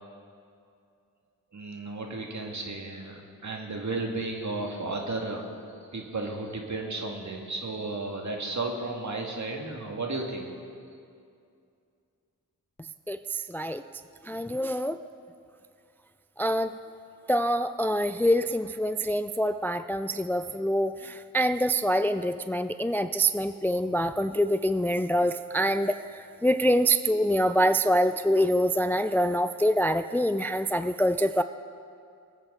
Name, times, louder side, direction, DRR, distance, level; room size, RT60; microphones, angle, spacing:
voice 1, 1.5-5.6 5.9-10.5, right 2 dB, 55° right, 1 dB, 2.0 m, -33 dB
voice 2, 13.5-13.8 14.3-15.0 16.4-16.7 17.3-26.0 26.4-31.4, equal, 5° left, 11 dB, 0.3 m, -25 dB
21.5 x 8.9 x 3.8 m, 2.4 s
cardioid pair, 45°, 34 cm